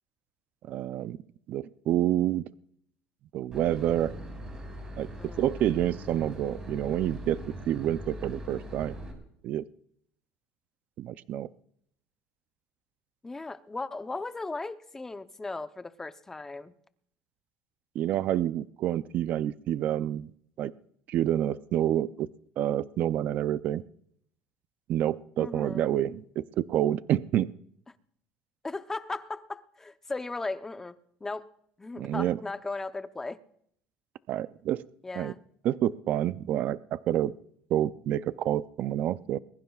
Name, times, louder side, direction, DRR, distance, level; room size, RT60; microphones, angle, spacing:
voice 1, 0.7-1.2 1.5-2.5 3.3-4.2 5.0-7.4 7.7-9.0 9.4-9.6 11.0-11.5 17.9-20.3 20.6-20.7 21.1-22.3 22.6-23.8 24.9-27.5 32.0-32.4 34.3-34.8 35.1-35.3 35.6-37.3 37.7-39.4, right 12 dB, 50° right, 15 dB, 0.5 m, -28 dB
Boat Water vehicle / Engine, 3.5-9.1, equal, 20° right, 5.6 m, -41 dB
voice 2, 13.2-16.7 25.4-25.9 28.6-31.5 31.8-33.4 35.0-35.4, left 3 dB, 10° left, 11 dB, 0.8 m, -37 dB
22.0 x 21.0 x 2.4 m, 0.69 s
cardioid pair, 130°, 4 cm